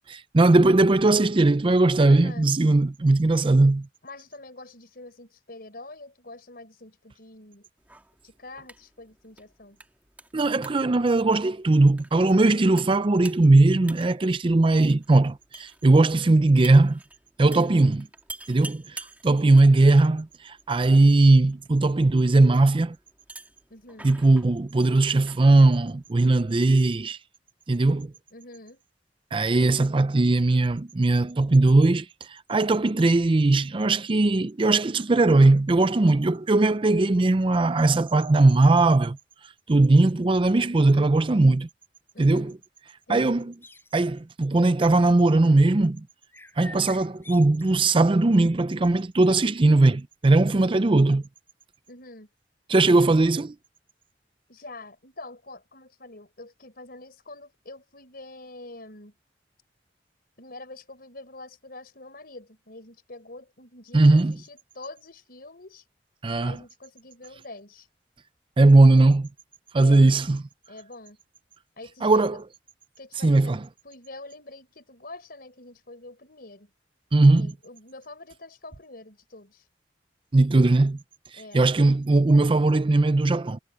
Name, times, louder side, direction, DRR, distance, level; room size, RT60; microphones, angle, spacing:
voice 1, 0.1-3.9 10.3-17.0 17.4-18.0 18.5-23.0 24.0-27.2 27.7-28.1 29.3-39.2 39.7-41.7 42.2-42.5 43.1-43.5 43.9-46.0 46.6-51.2 52.7-53.5 63.9-64.4 66.2-66.6 68.6-69.3 69.7-70.4 72.0-72.4 73.2-73.6 77.1-77.5 80.3-81.0 81.5-83.6, right 2 dB, 30° right, 0.5 m, -19 dB
voice 2, 2.1-2.5 4.0-7.7 8.2-9.8 17.4-17.8 23.7-24.1 28.3-28.8 42.1-42.6 43.1-43.5 51.9-52.3 54.5-59.2 60.4-65.8 66.4-67.9 69.8-70.1 70.7-71.2 71.8-72.4 73.0-76.7 77.4-79.6 81.3-81.7, left 2 dB, 60° left, 5.3 m, -45 dB
sound 1, 7.8-26.6, right 2 dB, 10° right, 2.0 m, -49 dB
sound 2, 43.6-44.2 46.3-48.1, left 2 dB, 15° left, 7.2 m, -47 dB
head